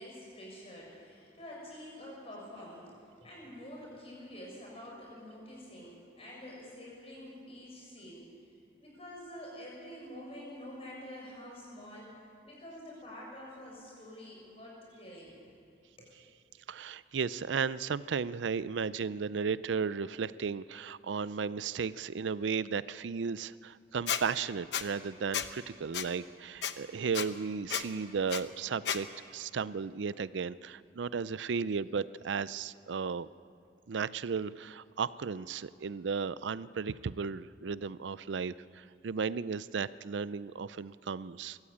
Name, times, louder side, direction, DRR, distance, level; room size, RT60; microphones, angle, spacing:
voice 1, 0.0-8.3 8.8-12.2 12.4-15.6 16.0-16.1, left 1 dB, 35° left, -3 dB, 6.9 m, -47 dB
voice 2, 16.7-33.3 33.9-41.6, right 5 dB, 90° right, 17 dB, 0.5 m, -35 dB
Squeak, 24.1-24.2 24.7-24.8 25.3-25.5 25.9-26.1 26.6-26.7 27.1-27.3 27.7-27.8 28.3-28.4 28.9-29.0, left 8 dB, 70° left, 1.0 m, -32 dB
23.0 x 14.5 x 8.7 m, 2.3 s
head